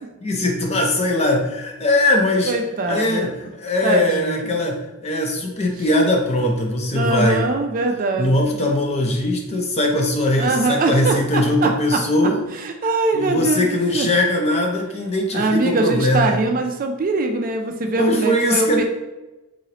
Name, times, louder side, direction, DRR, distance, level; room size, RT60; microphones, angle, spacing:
voice 1, 0.2-2.5 2.9-7.4 8.2-12.4 13.1-16.4 17.9-18.8, left 1 dB, 30° left, 1 dB, 0.5 m, -20 dB
voice 2, 2.5-3.3 3.8-4.5 6.9-8.6 10.4-12.0 12.6-14.1 15.3-18.8, right 2 dB, 40° right, 4 dB, 0.4 m, -22 dB
3.8 x 3.0 x 2.8 m, 1.0 s
head